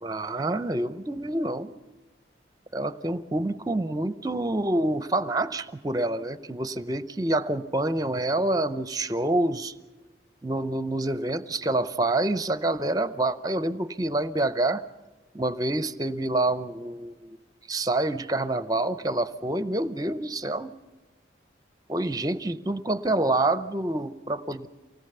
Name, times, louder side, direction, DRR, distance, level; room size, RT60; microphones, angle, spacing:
voice 1, 0.0-1.7 2.7-9.7 10.4-14.8 15.3-17.4 17.7-20.7 21.9-24.7, right 2 dB, 20° right, 13 dB, 0.6 m, -27 dB
25.0 x 18.0 x 6.8 m, 1.2 s
head